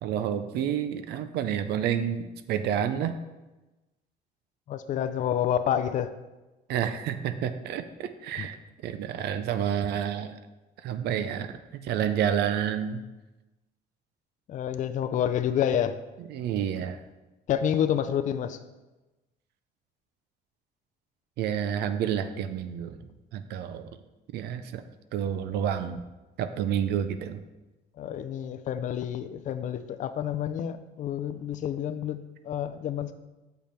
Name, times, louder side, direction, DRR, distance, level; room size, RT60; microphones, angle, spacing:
voice 1, 0.0-3.1 6.7-10.4 10.8-13.0 16.3-17.0 21.4-23.0 23.3-23.9 24.3-24.8 25.1-26.0 26.4-27.4, right 9 dB, 75° right, 10 dB, 0.5 m, -29 dB
voice 2, 4.7-6.1 8.4-8.5 14.5-16.0 17.5-18.6 28.0-33.1, left 9 dB, 50° left, 10 dB, 0.4 m, -28 dB
6.9 x 5.2 x 4.4 m, 1.1 s
cardioid pair, 110°, 17 cm